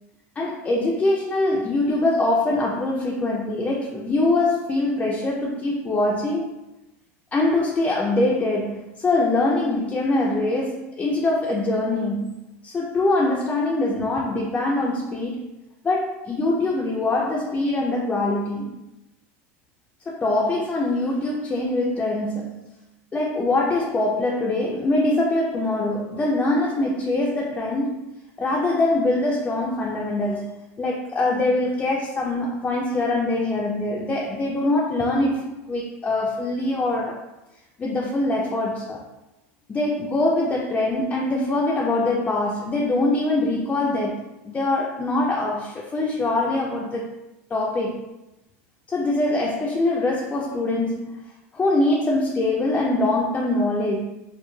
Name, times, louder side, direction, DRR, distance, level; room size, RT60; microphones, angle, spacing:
voice 1, 0.4-6.5 7.3-12.4 12.6-15.4 15.8-18.8 20.1-22.7 23.1-28.0 28.4-37.2 37.8-39.0 39.7-47.1 47.5-48.0 48.9-51.2 51.5-54.0, left 2 dB, 15° left, -3 dB, 0.3 m, -23 dB
2.2 x 2.1 x 3.0 m, 0.96 s
supercardioid pair, 125°, 7 cm